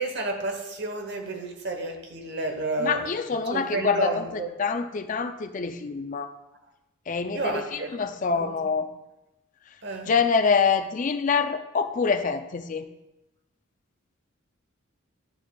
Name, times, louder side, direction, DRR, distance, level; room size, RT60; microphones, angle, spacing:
voice 1, 0.0-3.1 3.5-4.5 7.3-8.0 8.3-8.7 9.8-10.1, right 2 dB, 55° right, 4 dB, 0.9 m, -31 dB
voice 2, 2.8-6.3 7.1-8.9 10.0-12.9, left 5 dB, 40° left, 9 dB, 0.4 m, -26 dB
11.5 x 4.9 x 2.3 m, 0.96 s
head